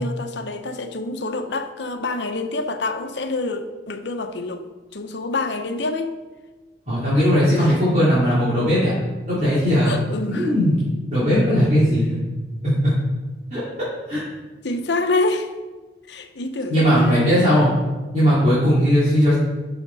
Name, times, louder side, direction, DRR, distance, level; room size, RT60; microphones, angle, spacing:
voice 1, 0.0-4.6 4.9-6.2 7.6-7.7 9.9-10.5 14.6-15.5 16.1-17.3, left 2 dB, 75° left, 7 dB, 0.9 m, -27 dB
voice 2, 6.9-8.9 9.3-10.0 10.3-10.8 11.1-12.2 12.6-12.9 13.5-13.6 14.1-14.2 16.7-17.7 18.1-19.3, equal, 40° right, -11 dB, 3.0 m, -18 dB
12.0 x 6.0 x 4.1 m, 1.2 s
head